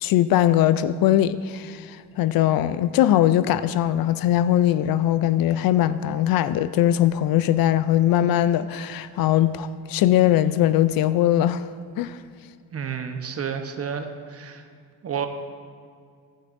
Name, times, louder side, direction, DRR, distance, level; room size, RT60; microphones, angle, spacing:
voice 1, 0.0-11.7 12.0-12.2, left 12 dB, 60° left, 14 dB, 0.5 m, -20 dB
voice 2, 12.7-14.6 15.0-15.3, right 7 dB, 35° right, 6 dB, 1.0 m, -30 dB
15.0 x 11.5 x 2.6 m, 2.1 s
cardioid pair, 85°, 39 cm